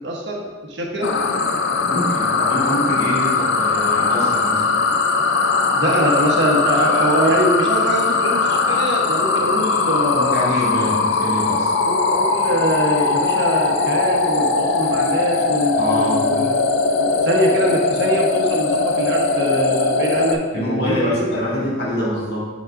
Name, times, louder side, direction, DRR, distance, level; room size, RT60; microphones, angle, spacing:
voice 1, 0.0-1.1 5.7-10.4 11.9-16.6 17.0-21.3 21.9-22.0, right 1 dB, 70° right, -1 dB, 1.1 m, -23 dB
sound 1, 1.0-20.3, left 4 dB, 80° left, 0.5 m, -20 dB
voice 2, 1.8-4.6 10.1-11.7 15.8-16.3 20.5-22.5, left 1 dB, 60° left, -7 dB, 1.9 m, -24 dB
7.2 x 6.1 x 2.6 m, 1.4 s
head